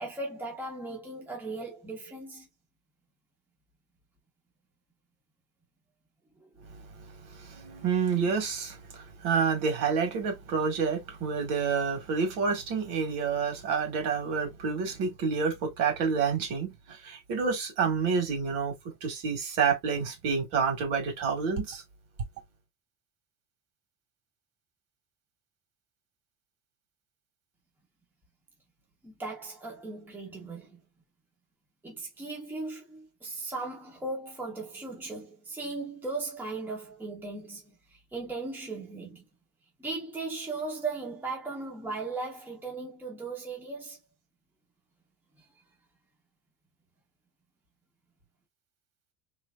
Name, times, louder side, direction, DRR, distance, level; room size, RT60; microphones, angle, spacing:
voice 1, 0.0-2.5 6.4-6.7 29.0-30.8 31.8-39.3 39.8-44.0, right 3 dB, 5° right, 1.0 m, -37 dB
voice 2, 7.2-21.8, right 5 dB, 55° right, 2.1 m, -29 dB
3.4 x 3.3 x 2.4 m
cardioid pair, 160°, 36 cm